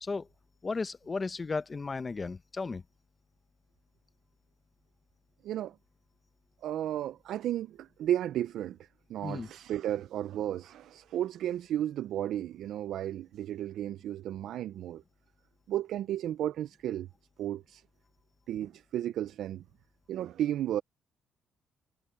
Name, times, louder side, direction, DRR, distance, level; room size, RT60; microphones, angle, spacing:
voice 1, 0.6-2.8 9.2-9.5, left 4 dB, 30° left, 1.0 m, -34 dB
voice 2, 5.4-5.8 6.6-15.0 15.7-17.1 17.4-17.8 18.5-19.6 20.1-20.8, right 11 dB, 80° right, 0.5 m, -33 dB
cardioid pair, 90°, 0 cm